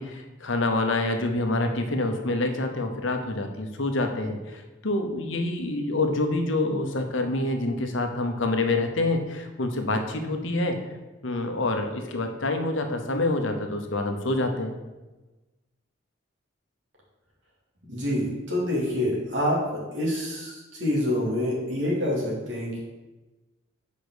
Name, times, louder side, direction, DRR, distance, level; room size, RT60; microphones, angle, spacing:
voice 1, 0.0-10.8 11.2-14.7, left 2 dB, 75° left, 5 dB, 0.9 m, -27 dB
voice 2, 17.9-19.6 19.9-22.8, left 1 dB, 65° right, -5 dB, 2.7 m, -26 dB
5.2 x 5.2 x 6.3 m, 1.1 s
head